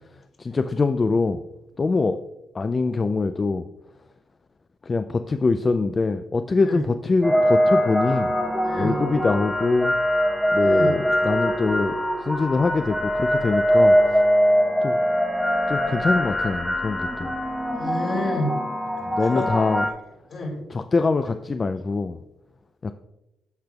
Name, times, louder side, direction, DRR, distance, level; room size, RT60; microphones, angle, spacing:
voice 1, 0.4-1.4 1.8-2.2 2.5-3.7 4.8-8.3 8.8-10.0 10.5-12.0 12.2-14.2 14.8-15.0 15.7-17.3 19.2-19.9 20.7-22.2 22.8-22.9, left 3 dB, 30° left, 9 dB, 0.3 m, -23 dB
sound 1, 7.2-19.9, equal, 5° left, 0.9 m, -22 dB
voice 2, 8.6-9.0 10.6-10.9 17.8-18.6 19.3-19.4 20.3-20.6, left 1 dB, 55° left, -1 dB, 2.7 m, -28 dB
13.5 x 5.1 x 2.3 m, 0.94 s
cardioid pair, 90°, 0 cm